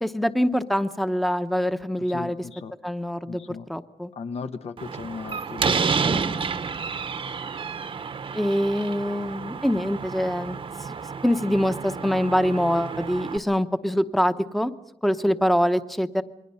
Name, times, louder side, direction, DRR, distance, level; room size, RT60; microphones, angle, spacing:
voice 1, 0.0-2.4 2.8-4.1 8.3-10.9 11.2-14.7 15.0-16.2, equal, ahead, 10 dB, 0.8 m, -24 dB
voice 2, 2.1-2.7 3.2-3.6 4.1-6.6, left 5 dB, 70° left, 10 dB, 1.0 m, -36 dB
Slam, 4.8-13.4, right 5 dB, 50° right, 1.0 m, -30 dB
28.5 x 22.5 x 5.6 m, 0.81 s
wide cardioid pair, 130°, 11 cm